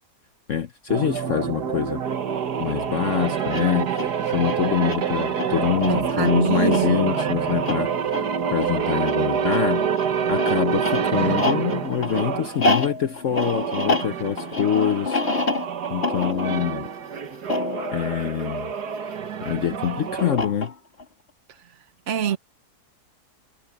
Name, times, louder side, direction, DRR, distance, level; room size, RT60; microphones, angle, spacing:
voice 1, 0.5-2.0 2.6-9.9 10.3-15.2 15.9-16.9 17.9-18.7 19.4-20.7, left 9 dB, 60° left, 1.1 m, -25 dB
sound 1, 0.9-12.6 13.2-20.4, right 7 dB, 85° right, 1.9 m, -26 dB
sound 2, 3.4-19.2 20.2-21.0, left 3 dB, 40° left, 2.6 m, -29 dB
voice 2, 5.8-7.0 22.1-22.4, right 9 dB, 55° right, 1.1 m, -24 dB
omnidirectional pair, 1.7 m